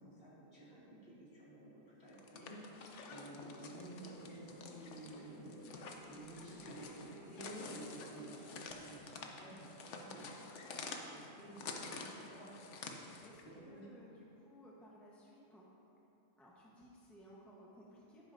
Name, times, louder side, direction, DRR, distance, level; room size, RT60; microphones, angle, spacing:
voice 1, 0.0-10.3 10.6-12.5 13.4-13.8, right 1 dB, 45° left, -8 dB, 2.6 m, -53 dB
sound 1, 2.1-13.4, left 4 dB, 65° left, 1.0 m, -49 dB
Aeolius Harpman The Ballad of, 2.8-8.4, right 1 dB, 90° left, 2.2 m, -59 dB
sound 2, 4.8-5.6 5.9-8.8, right 1 dB, 75° right, 1.8 m, -62 dB
voice 2, 13.0-15.7 16.4-18.3, equal, ahead, -5 dB, 0.9 m, -59 dB
11.0 x 10.0 x 2.6 m, 2.9 s
omnidirectional pair, 1.3 m